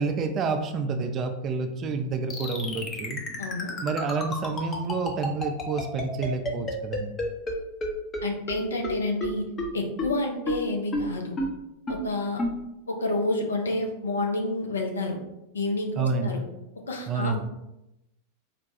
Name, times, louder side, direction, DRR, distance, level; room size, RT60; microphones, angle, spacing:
voice 1, 0.0-3.2 3.8-7.1 16.0-16.4 17.1-17.4, right 4 dB, 30° right, 6 dB, 0.3 m, -29 dB
sound 1, 2.3-7.5 7.8-7.9 8.1-8.2 8.5-8.6 8.8-8.9 9.2-9.3 9.6-9.7 10.0-10.1 10.5-10.6 10.9-11.0 11.4-11.5 11.9-12.0 12.4-12.5, left 2 dB, 25° left, 0.6 m, -29 dB
voice 2, 3.4-3.7 8.2-9.4 9.7-11.4 11.9-12.4 12.9-15.2 15.5-15.9 16.2-16.4 16.9-17.4, left 2 dB, 70° left, 1 dB, 0.6 m, -29 dB
4.1 x 2.2 x 2.7 m, 0.91 s
figure-of-eight pair, 90°, 0 cm